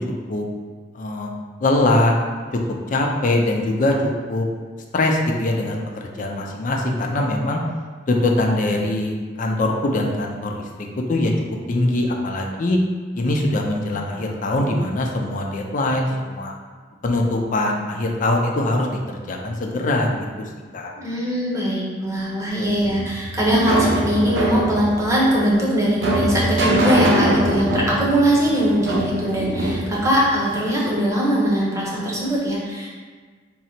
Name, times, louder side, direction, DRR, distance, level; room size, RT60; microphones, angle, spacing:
voice 1, 0.9-1.3 1.6-2.1 2.9-4.0 4.3-4.5 4.9-7.6 8.1-11.3 11.7-12.8 13.2-16.5 17.0-19.0 19.3-20.9, left 2 dB, 45° left, 1 dB, 0.5 m, -22 dB
voice 2, 21.0-32.9, right 1 dB, 15° right, -5 dB, 0.8 m, -21 dB
sound 1, 22.8-31.0, equal, 80° right, 0.6 m, -23 dB
3.7 x 2.0 x 4.3 m, 1.5 s
head